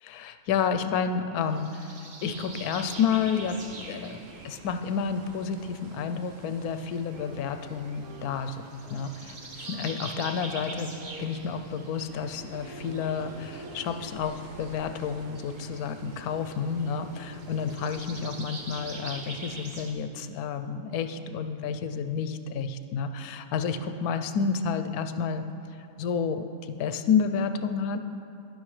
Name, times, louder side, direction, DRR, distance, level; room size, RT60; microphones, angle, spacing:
voice 1, 0.0-4.2 4.4-25.4 26.0-28.0, left 6 dB, 90° left, 9 dB, 1.1 m, -30 dB
sound 1, 1.4-19.9, right 3 dB, 40° right, 0.9 m, -45 dB
sound 2, 2.3-19.7, right 5 dB, 70° right, 1.0 m, -48 dB
sound 3, 7.1-14.5, equal, 85° right, 1.3 m, -50 dB
12.0 x 11.0 x 3.2 m, 2.7 s
omnidirectional pair, 1.5 m